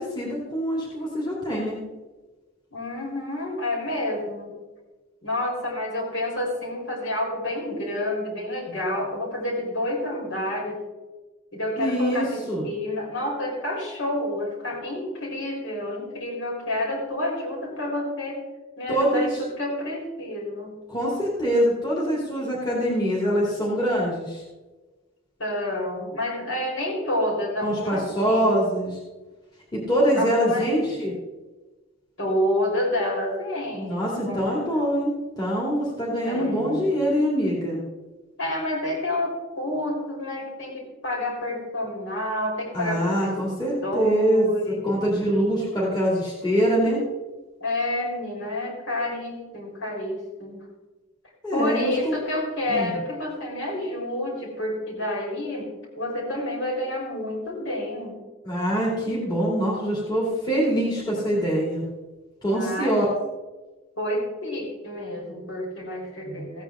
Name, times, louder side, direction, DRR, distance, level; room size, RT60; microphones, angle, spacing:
voice 1, 0.0-1.8 11.8-12.7 18.9-19.4 20.9-24.4 27.6-29.0 29.7-31.1 33.7-37.8 42.7-44.5 44.8-47.0 51.4-52.0 52.7-53.0 58.4-61.8 62.4-63.1, equal, 20° left, -6 dB, 2.8 m, -24 dB
voice 2, 2.7-4.6 5.2-10.8 11.5-18.4 18.8-20.7 25.4-28.5 30.2-30.7 32.2-33.9 34.2-34.8 36.2-37.0 38.4-43.4 43.8-44.8 47.6-50.6 51.5-55.7 55.9-58.2 62.5-63.0 64.0-66.6, left 1 dB, 55° left, -2 dB, 4.2 m, -29 dB
16.0 x 8.9 x 3.7 m, 1.2 s
head